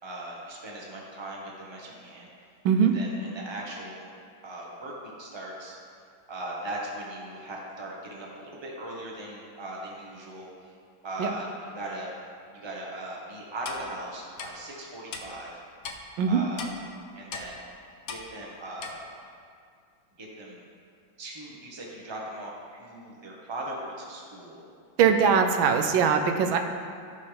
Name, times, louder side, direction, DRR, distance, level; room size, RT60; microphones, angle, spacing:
voice 1, 0.0-4.0 4.4-5.8 6.3-10.7 11.0-12.2 12.5-15.6 16.3-16.7 17.1-17.6 18.1-19.0 20.2-20.6 21.2-24.6 25.5-25.9, right 1 dB, 15° right, -3 dB, 1.0 m, -39 dB
Clock, 13.6-13.8 14.4-14.5 15.1-15.2 15.8-16.0 16.6-16.7 17.3-17.5 18.1-18.2 18.8-18.9, left 5 dB, 60° left, 1.0 m, -37 dB
voice 2, 25.0-26.6, right 6 dB, 85° right, 5 dB, 1.4 m, -21 dB
15.0 x 5.5 x 3.3 m, 2.3 s
omnidirectional pair, 2.2 m